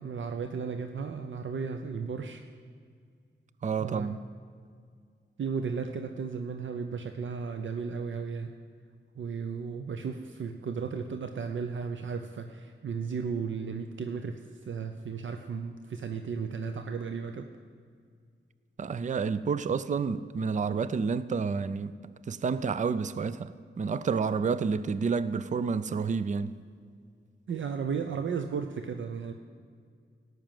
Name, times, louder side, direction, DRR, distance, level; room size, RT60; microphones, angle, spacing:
voice 1, 0.0-2.4 3.8-4.1 5.4-8.5 9.2-17.5 27.5-29.3, right 5 dB, 70° right, 0.7 m, -34 dB
voice 2, 3.6-4.2 18.8-22.0 22.3-23.5 23.8-26.5, right 5 dB, 40° right, 0.4 m, -29 dB
17.5 x 6.4 x 9.0 m
wide cardioid pair, 160°, 20 cm